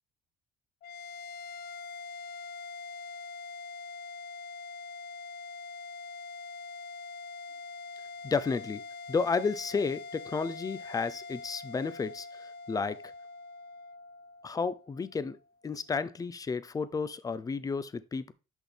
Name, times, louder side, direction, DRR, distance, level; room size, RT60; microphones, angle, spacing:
sound 1, 0.8-15.4, left 4 dB, 65° left, 0.6 m, -44 dB
voice 1, 8.2-8.8 9.1-13.1 14.4-15.4 15.6-18.3, left 4 dB, 20° left, 0.5 m, -32 dB
6.2 x 5.7 x 3.4 m
cardioid pair, 110°, 17 cm